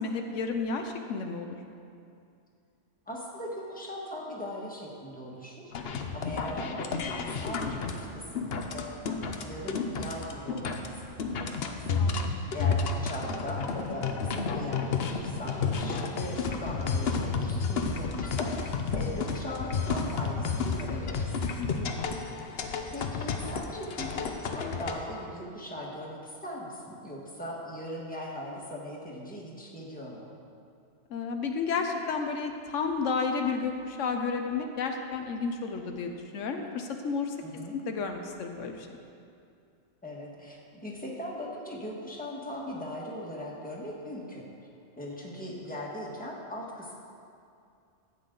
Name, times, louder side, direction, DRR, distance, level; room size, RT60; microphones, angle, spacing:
voice 1, 0.0-1.6 12.0-12.4 21.6-21.9 31.1-37.4 37.7-38.9, left 5 dB, 85° left, 4 dB, 1.1 m, -32 dB
voice 2, 3.0-5.7 6.1-11.9 12.5-21.5 22.9-30.3 37.4-37.7 40.0-44.4 45.0-46.9, equal, 5° left, -4 dB, 1.6 m, -39 dB
sound 1, 5.7-24.9, left 5 dB, 60° left, 0.9 m, -31 dB
13.5 x 8.4 x 3.9 m, 2.5 s
omnidirectional pair, 1.3 m